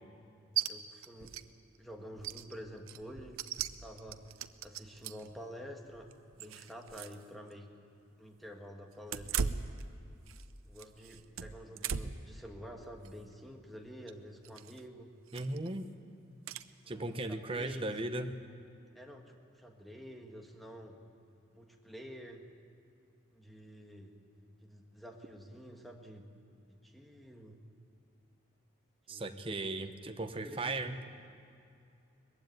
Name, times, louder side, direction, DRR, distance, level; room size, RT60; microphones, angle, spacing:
sound 1, 0.6-0.7 1.0-1.4 1.7-1.8 2.2-5.3 5.9-7.2 7.5-7.6 9.0-10.4 10.8-12.3 12.8-13.1 14.4-14.8 15.3-15.7 16.5-16.6, right 7 dB, 90° right, 0.7 m, -38 dB
voice 1, 0.7-1.4 1.8-3.4 3.8-4.3 4.6-7.8 8.2-9.7 10.6-15.1 16.8-17.9 18.9-21.0 21.5-22.5 23.3-24.1 24.6-26.3 26.7-27.6 29.1-29.4 30.4-30.8, equal, ahead, 2 dB, 1.5 m, -49 dB
voice 2, 15.3-15.9 16.9-18.4 29.1-31.0, right 2 dB, 25° right, 7 dB, 0.9 m, -37 dB
20.5 x 15.0 x 9.3 m, 2.5 s
head